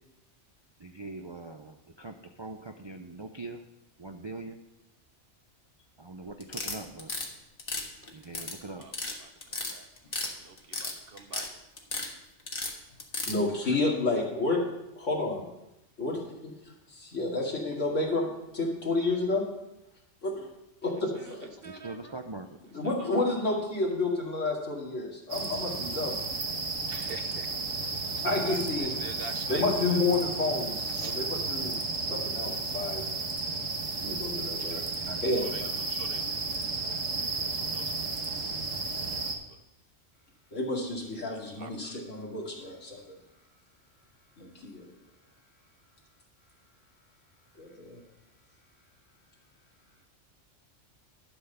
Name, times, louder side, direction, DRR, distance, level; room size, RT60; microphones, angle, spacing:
voice 1, 0.8-3.6 4.0-4.6 6.0-7.1 8.1-8.8 21.6-22.6 33.5-33.6 34.0-34.5 35.0-35.4, right 3 dB, 35° right, 5 dB, 0.4 m, -42 dB
sound 1, 6.4-7.3 7.6-8.5 8.8-9.1 9.4-10.3 10.6-11.5 11.8-12.1 12.5-13.4, left 3 dB, 50° left, 1.6 m, -33 dB
voice 2, 8.7-11.5 21.2-22.1 22.8-23.3 26.9-30.2 30.9-31.2 32.0-32.1 35.5-38.2 38.8-39.6 41.6-42.0, right 4 dB, 55° right, 7 dB, 1.0 m, -47 dB
voice 3, 13.3-14.6 15.0-15.4 16.0-16.5 16.9-19.4 20.2-20.5 20.8-21.5 22.7-26.2 28.2-28.9 29.5-31.7 32.0-33.1 34.0-34.8 35.2-35.7 36.0-36.1 40.5-43.2 44.4-44.9 47.5-48.0, left 2 dB, 75° left, -2 dB, 2.7 m, -30 dB
sound 2, 25.3-39.3, right 3 dB, 80° right, 1.7 m, -33 dB
11.5 x 5.8 x 6.7 m, 0.92 s
omnidirectional pair, 1.3 m